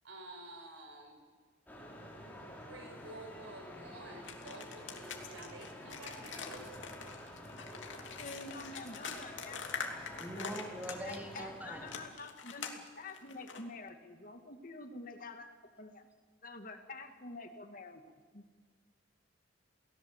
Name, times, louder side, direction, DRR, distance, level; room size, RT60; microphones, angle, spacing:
voice 1, 0.0-1.2 2.6-6.8, right 1 dB, 75° right, 4 dB, 5.9 m, -51 dB
sound 1, 1.7-12.0, equal, 10° left, 4.7 m, -49 dB
sound 2, 4.2-11.4 11.9-13.6, left 6 dB, 70° left, 2.8 m, -44 dB
voice 2, 8.2-9.9 10.3-10.5 11.0-15.5 15.8-16.0 16.4-18.0 18.3-18.6, left 3 dB, 45° left, 6 dB, 2.1 m, -48 dB
voice 3, 10.2-12.0, right 1 dB, 10° right, 1 dB, 3.4 m, -43 dB
29.0 x 18.0 x 8.1 m, 1.5 s
head